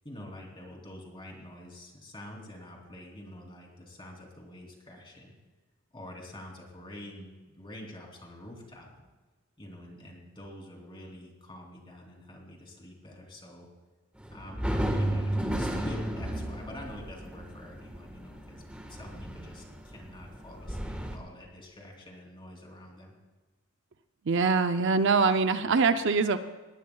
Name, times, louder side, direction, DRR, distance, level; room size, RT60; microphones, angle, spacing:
voice 1, 0.0-5.3 5.9-8.9 9.6-13.7 14.3-18.6 18.9-23.1, left 1 dB, 25° left, 0 dB, 3.1 m, -46 dB
sound 1, 14.2-21.2, right 1 dB, 5° right, 1.4 m, -33 dB
voice 2, 24.3-26.4, right 4 dB, 60° right, 10 dB, 0.6 m, -24 dB
19.5 x 19.0 x 2.3 m, 1.3 s
head